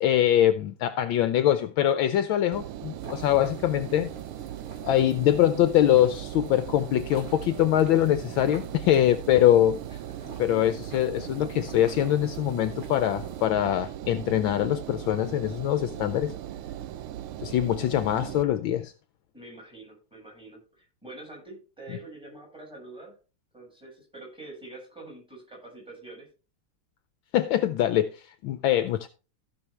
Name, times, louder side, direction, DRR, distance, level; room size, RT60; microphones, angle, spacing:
voice 1, 0.0-4.1 4.8-9.8 10.4-16.3 17.4-18.9 27.3-29.1, left 11 dB, 75° left, 1.4 m, -23 dB
Engine, 2.5-18.4, right 12 dB, 85° right, 1.6 m, -38 dB
sound 1, 3.0-13.5, right 3 dB, 45° right, 2.6 m, -48 dB
voice 2, 9.9-10.4 19.3-23.1 23.5-26.3, right 2 dB, ahead, 6.4 m, -46 dB
15.5 x 6.3 x 3.3 m
omnidirectional pair, 2.3 m